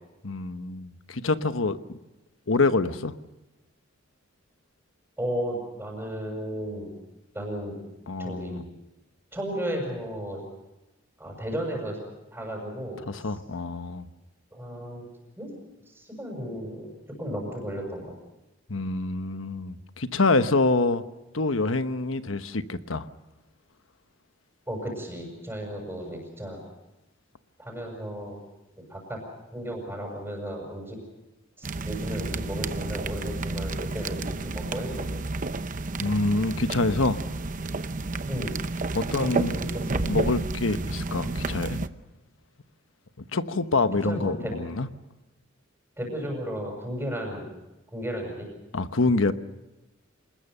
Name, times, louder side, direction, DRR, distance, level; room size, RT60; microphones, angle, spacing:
voice 1, 0.2-2.0 2.5-3.1 8.1-8.6 13.1-14.1 18.7-21.0 21.3-23.1 36.0-37.2 38.9-39.6 39.9-41.8 43.3-44.9 48.7-49.3, left 3 dB, 85° left, 11 dB, 1.1 m, -26 dB
voice 2, 5.2-6.9 7.3-7.8 8.2-8.7 9.3-10.4 11.2-12.0 12.3-13.3 14.5-15.1 15.4-15.5 15.9-18.2 24.7-26.6 27.6-28.4 28.8-29.2 29.5-31.0 31.6-35.3 38.3-38.5 39.2-40.0 44.0-44.5 46.0-47.5 47.9-48.5, equal, 10° right, -1 dB, 6.8 m, -34 dB
sound 1, 31.6-41.9, right 3 dB, 45° right, 0.8 m, -31 dB
26.5 x 21.0 x 6.8 m, 1.0 s
head